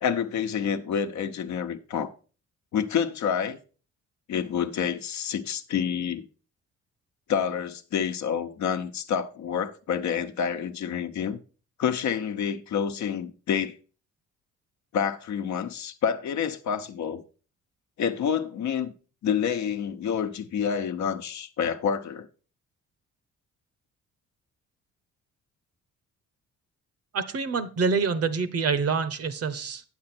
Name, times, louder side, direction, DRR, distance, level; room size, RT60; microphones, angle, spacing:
voice 1, 0.0-2.1 2.7-3.6 4.3-6.3 7.3-11.4 11.8-13.8 14.9-17.2 18.0-18.9 19.2-22.3, left 7 dB, 65° left, 0.9 m, -28 dB
voice 2, 27.1-29.8, right 5 dB, 55° right, 0.9 m, -26 dB
8.7 x 7.2 x 4.3 m
cardioid pair, 90°, 30 cm